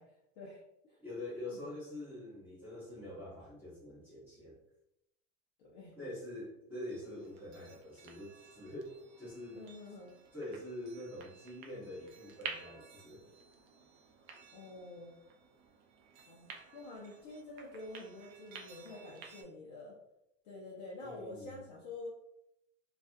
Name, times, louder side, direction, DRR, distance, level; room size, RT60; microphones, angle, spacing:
voice 1, 0.0-1.0 1.5-1.7 5.6-6.0 9.6-10.2 14.5-15.1 16.3-20.0 20.4-22.1, left 2 dB, 35° left, -4 dB, 0.4 m, -48 dB
voice 2, 1.0-4.6 5.9-8.9 9.2-9.6 10.3-13.3 21.0-21.5, left 1 dB, 5° right, -9 dB, 0.7 m, -45 dB
sound 1, 6.9-19.4, right 6 dB, 50° right, 0.5 m, -52 dB
2.4 x 2.3 x 2.5 m, 0.81 s
supercardioid pair, 160°, 38 cm